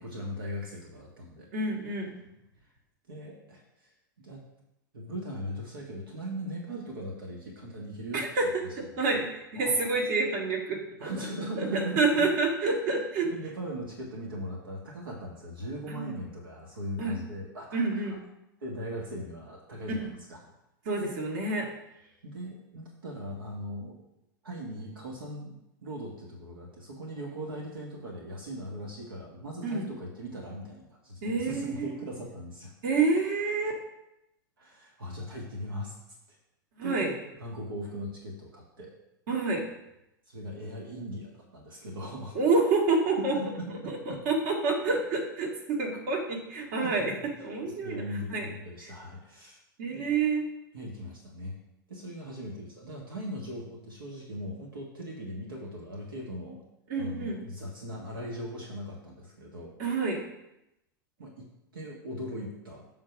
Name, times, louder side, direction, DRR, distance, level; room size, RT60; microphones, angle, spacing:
voice 1, 0.0-1.5 3.1-4.4 4.9-8.2 9.6-9.9 11.0-12.2 13.3-18.2 18.6-20.5 22.2-24.0 24.4-25.6 25.8-32.7 34.6-35.9 36.3-36.4 36.8-38.9 40.3-42.4 43.3-44.2 46.8-47.1 47.6-49.6 49.9-50.1 50.7-51.5 51.9-56.6 57.0-59.7 61.2-61.5 61.7-62.9, equal, 80° right, -1 dB, 1.6 m, -39 dB
voice 2, 1.5-2.2 8.1-11.1 11.6-13.3 15.9-16.1 17.0-17.2 17.7-18.2 19.9-20.1 20.9-21.7 29.6-29.9 31.2-31.9 32.8-33.8 36.8-37.1 39.3-39.6 42.3-43.4 43.9-47.1 47.4-48.0 48.3-48.5 49.8-50.5 56.9-57.4 59.8-60.2, right 3 dB, 55° right, 0 dB, 2.0 m, -28 dB
7.2 x 3.9 x 5.9 m, 0.86 s
hypercardioid pair, 100°, 11 cm